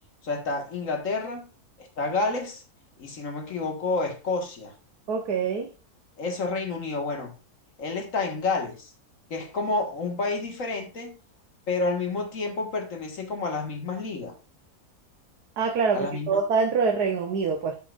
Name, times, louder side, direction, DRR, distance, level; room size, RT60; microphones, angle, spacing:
voice 1, 0.2-1.5 1.8-2.6 3.0-4.7 6.2-7.3 7.8-8.9 9.3-11.2 11.7-14.4 15.9-16.4, left 3 dB, 55° left, 2.1 m, -29 dB
voice 2, 5.1-5.7 15.6-17.8, right 5 dB, 90° right, 1.6 m, -25 dB
12.0 x 5.7 x 2.5 m
omnidirectional pair, 1.6 m